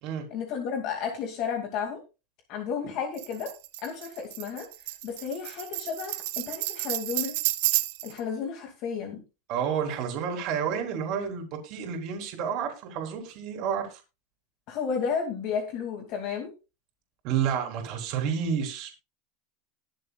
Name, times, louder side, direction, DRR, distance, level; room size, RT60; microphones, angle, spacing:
voice 1, 0.3-2.0 2.5-3.5 3.8-4.7 5.0-7.3 8.0-9.2 14.7-16.5, left 6 dB, 40° left, 3 dB, 2.4 m, -32 dB
Tambourine, 3.2-8.2, right 17 dB, 60° right, 1.1 m, -31 dB
voice 2, 9.5-14.0 17.2-18.9, right 7 dB, 45° right, 3 dB, 3.8 m, -30 dB
21.0 x 7.4 x 2.4 m, 0.29 s
supercardioid pair, 160°, 0 cm